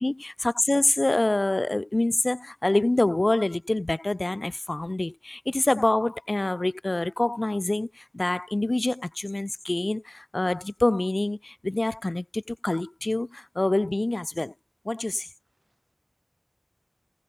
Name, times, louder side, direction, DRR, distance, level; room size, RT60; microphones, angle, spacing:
voice 1, 0.0-14.5 14.8-15.3, left 2 dB, 65° left, 0.6 m, -26 dB
voice 2, 15.2-16.0, right 2 dB, 80° right, 4.7 m, -73 dB
wide cardioid pair, 40°, 0 cm